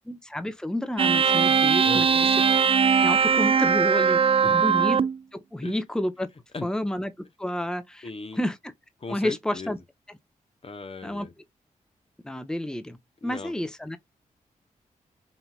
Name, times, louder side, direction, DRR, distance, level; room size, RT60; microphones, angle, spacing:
voice 1, 0.1-2.3 3.0-4.2 4.5-5.0 5.3-6.3 6.6-7.1 7.4-8.1 8.3-8.6 9.1-9.8 11.0-11.3 12.2-13.0 13.2-14.0, left 1 dB, 5° left, 0.9 m, -30 dB
sound 1, 1.0-5.2, right 6 dB, 40° right, 0.3 m, -20 dB
voice 2, 1.8-2.3 4.4-4.6 5.6-5.8 6.5-6.7 8.0-8.4 9.0-9.7 10.6-11.3 13.2-13.5, left 3 dB, 40° left, 1.0 m, -37 dB
5.4 x 2.8 x 2.4 m
cardioid pair, 50°, 15 cm